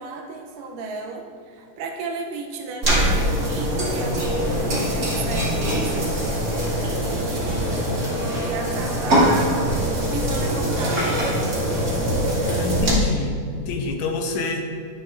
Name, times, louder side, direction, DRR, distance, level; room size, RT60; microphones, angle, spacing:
voice 1, 0.0-6.1 7.1-9.7 10.1-12.0, right 3 dB, 90° right, 2 dB, 2.4 m, -34 dB
sound 1, 2.8-12.9, equal, 30° right, 2.2 m, -23 dB
voice 2, 12.5-14.7, left 3 dB, 70° left, 4 dB, 1.9 m, -27 dB
11.0 x 10.5 x 2.6 m, 2.2 s
omnidirectional pair, 3.8 m